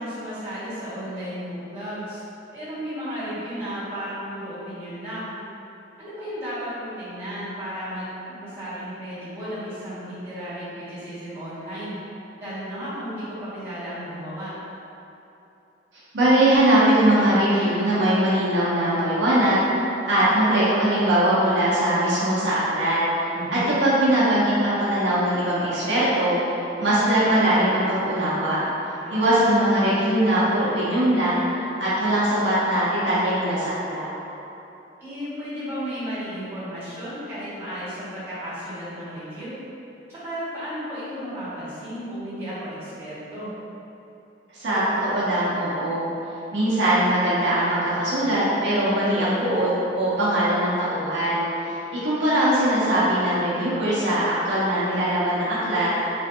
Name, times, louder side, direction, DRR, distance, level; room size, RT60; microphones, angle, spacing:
voice 1, 0.0-2.2 2.5-5.3 6.0-12.0 12.4-14.5 23.3-23.7 28.8-29.4 35.0-39.5 40.1-43.5, equal, 15° right, -15 dB, 1.5 m, -34 dB
voice 2, 16.1-19.6 20.1-23.0 23.5-26.4 26.8-28.6 29.1-31.4 31.8-34.1 44.5-46.1 46.5-55.9, right 1 dB, 80° right, -9 dB, 0.7 m, -21 dB
3.1 x 2.5 x 2.7 m, 2.9 s
head